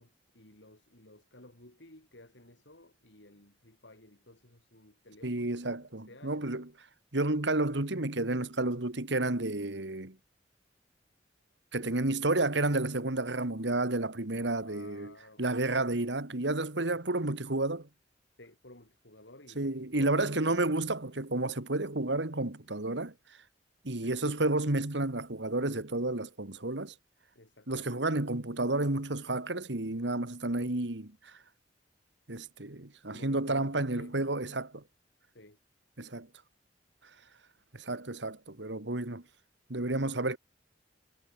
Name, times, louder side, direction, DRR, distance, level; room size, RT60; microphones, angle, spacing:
voice 1, 0.0-6.6 11.8-12.3 14.6-15.5 18.4-20.7 24.0-24.2 27.4-28.2 33.1-34.1 35.3-35.6, left 1 dB, 75° left, 6.9 m, -55 dB
voice 2, 5.2-6.7 7.1-10.2 11.7-17.9 19.6-23.4 23.8-26.9 27.7-31.4 32.3-34.8 36.0-36.3 37.7-39.2 39.7-40.4, right 2 dB, 70° right, 2.2 m, -31 dB
head